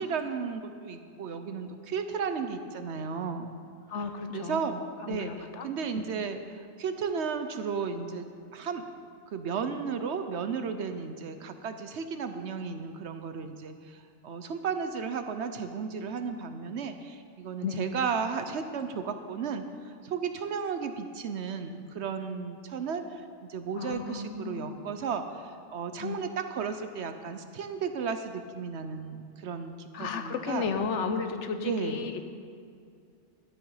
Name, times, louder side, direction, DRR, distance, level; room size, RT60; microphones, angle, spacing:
voice 1, 0.0-3.5 4.3-8.9 9.3-30.7 31.6-32.1, right 6 dB, 60° right, 8 dB, 0.9 m, -34 dB
voice 2, 3.9-4.6 5.1-5.7 5.9-6.0 17.6-17.9 23.8-24.8 26.0-26.3 29.9-32.3, left 5 dB, 65° left, 7 dB, 1.0 m, -33 dB
12.5 x 8.7 x 5.5 m, 2.4 s
omnidirectional pair, 1.4 m